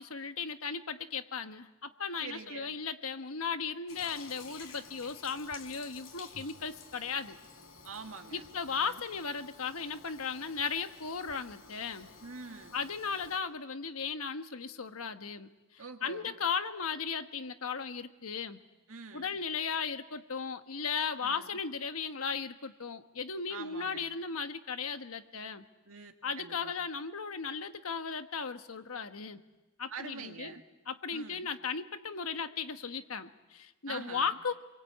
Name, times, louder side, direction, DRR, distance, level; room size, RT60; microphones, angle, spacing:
voice 1, 0.0-7.4 8.3-12.1 12.7-18.6 19.1-25.6 26.2-29.4 29.8-30.6 30.9-34.5, left 5 dB, 90° left, 8 dB, 1.3 m, -36 dB
voice 2, 2.2-2.8 7.8-9.0 12.2-12.7 15.8-16.3 18.9-19.3 21.2-21.5 23.5-24.0 25.9-26.7 29.9-30.6 31.1-31.5 33.9-34.4, right 4 dB, 75° right, 4 dB, 2.1 m, -45 dB
Toilet flush, 3.9-13.4, left 4 dB, 70° left, 4.5 m, -52 dB
27.5 x 23.0 x 8.5 m, 1.1 s
head